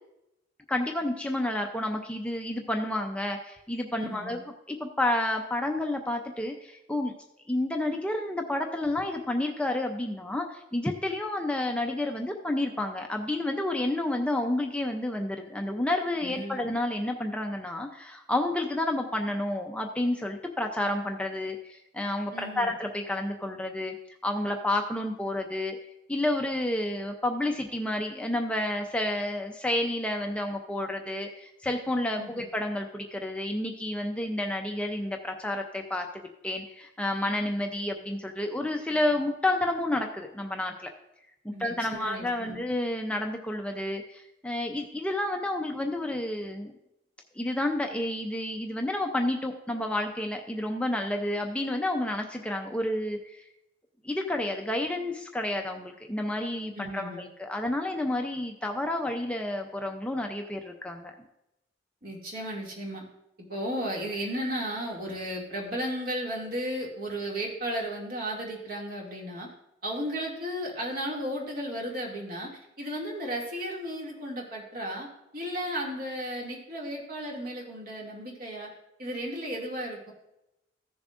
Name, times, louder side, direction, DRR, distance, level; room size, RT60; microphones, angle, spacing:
voice 1, 0.7-7.1 7.5-23.9 24.2-25.8 26.1-40.9 41.4-46.7 47.4-53.5 54.0-61.1, left 1 dB, 5° left, 3 dB, 0.5 m, -30 dB
voice 2, 4.0-4.4 16.2-16.6 22.3-22.7 32.2-32.5 41.5-42.6 56.7-57.2 62.0-63.0 63.5-69.5 69.8-75.1 75.3-78.7 79.0-80.1, equal, 55° right, -2 dB, 2.3 m, -34 dB
14.5 x 7.0 x 2.5 m, 0.87 s
head